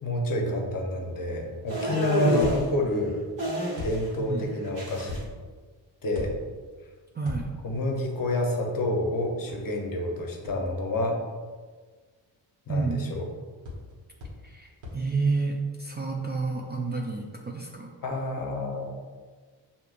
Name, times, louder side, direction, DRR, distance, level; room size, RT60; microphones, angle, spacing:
voice 1, 0.0-3.2 3.8-5.3 6.0-6.4 7.6-11.2 12.7-13.3 18.0-18.9, left 1 dB, 45° left, 1 dB, 0.8 m, -28 dB
sound 1, 1.7-2.7 3.4-4.1 4.4-5.2, right 1 dB, 45° right, 1.5 m, -30 dB
voice 2, 2.1-2.5 4.2-4.5 7.1-7.5 12.7-13.1 14.4-17.9, right 4 dB, 25° right, -1 dB, 0.4 m, -29 dB
sound 2, 2.4-3.0 3.7-4.4 5.1-5.6 6.1-6.8 7.2-7.9 9.5-9.6 10.4-10.5 13.6-13.9 14.2-14.5 14.8-15.1, left 2 dB, 80° right, 1.3 m, -38 dB
6.6 x 2.8 x 2.4 m, 1.5 s
wide cardioid pair, 120°, 45 cm